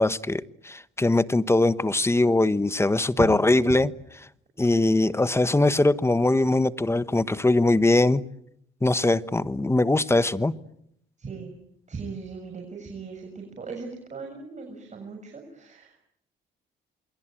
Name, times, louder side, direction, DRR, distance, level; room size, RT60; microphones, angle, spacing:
voice 1, 0.0-3.9 4.6-8.2 8.8-10.5, left 2 dB, 15° left, 1.1 m, -21 dB
voice 2, 11.2-11.6 11.9-16.1, right 5 dB, 35° right, 6.9 m, -38 dB
28.0 x 21.5 x 9.0 m
cardioid pair, 90°, 20 cm